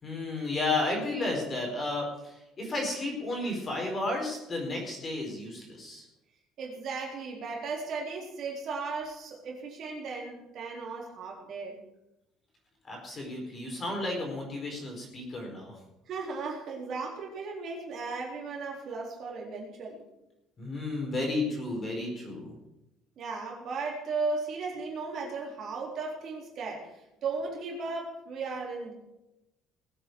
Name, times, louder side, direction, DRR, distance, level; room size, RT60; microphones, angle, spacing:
voice 1, 0.0-6.0 12.9-15.8 20.6-22.5, left 2 dB, 25° left, 1 dB, 4.8 m, -32 dB
voice 2, 6.6-11.8 16.1-20.0 23.2-28.9, right 4 dB, 45° right, -2 dB, 4.1 m, -36 dB
20.5 x 8.8 x 4.8 m, 0.92 s
cardioid pair, 160°, 0 cm